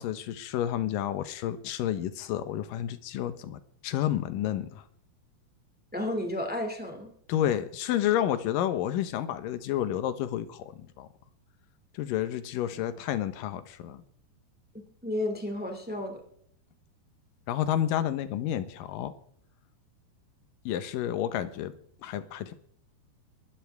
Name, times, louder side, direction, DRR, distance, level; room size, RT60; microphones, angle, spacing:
voice 1, 0.0-4.8 7.3-11.1 12.0-14.0 17.5-19.1 20.7-21.7 22.0-22.5, left 11 dB, 70° left, 11 dB, 2.3 m, -30 dB
voice 2, 5.9-7.1 15.0-16.2, left 1 dB, 5° right, 3 dB, 0.6 m, -32 dB
22.0 x 12.5 x 3.5 m, 0.63 s
omnidirectional pair, 4.8 m